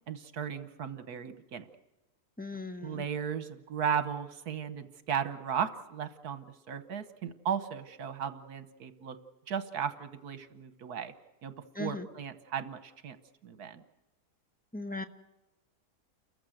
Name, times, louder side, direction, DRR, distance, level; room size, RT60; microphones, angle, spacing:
voice 1, 0.1-1.7 2.8-9.2 9.5-11.1 11.4-13.2 13.4-13.8, right 7 dB, 75° right, 12 dB, 1.6 m, -36 dB
voice 2, 2.4-3.0 11.7-12.1 14.7-15.0, left 2 dB, 5° left, 7 dB, 1.0 m, -38 dB
29.5 x 15.0 x 7.9 m, 1.0 s
omnidirectional pair, 1.7 m